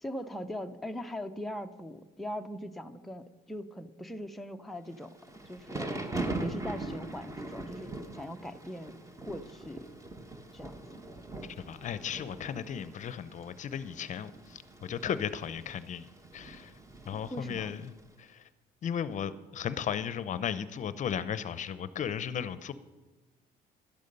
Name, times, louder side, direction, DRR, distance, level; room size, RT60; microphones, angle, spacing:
voice 1, 0.0-5.2 5.5-6.0 6.4-9.0 9.2-9.9 10.5-10.8 17.3-17.7, equal, ahead, 5 dB, 0.6 m, -40 dB
Thunder / Rain, 5.0-18.0, right 2 dB, 20° right, 1.3 m, -41 dB
voice 2, 11.7-16.7 17.1-17.9 18.2-18.4 18.8-22.7, left 8 dB, 45° left, 15 dB, 0.7 m, -35 dB
12.0 x 10.5 x 5.4 m, 1.2 s
cardioid pair, 110°, 17 cm